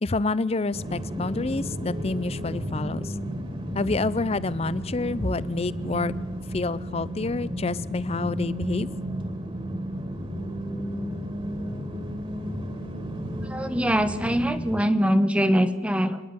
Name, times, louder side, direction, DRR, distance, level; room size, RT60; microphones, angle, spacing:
voice 1, 0.0-3.1 3.7-6.1 6.5-8.9, left 3 dB, 30° left, 18 dB, 0.6 m, -28 dB
sound 1, 0.7-14.8, equal, 30° right, 2.4 m, -33 dB
voice 2, 13.4-16.2, equal, 5° right, 10 dB, 1.1 m, -23 dB
27.0 x 11.0 x 9.6 m, 1.2 s
head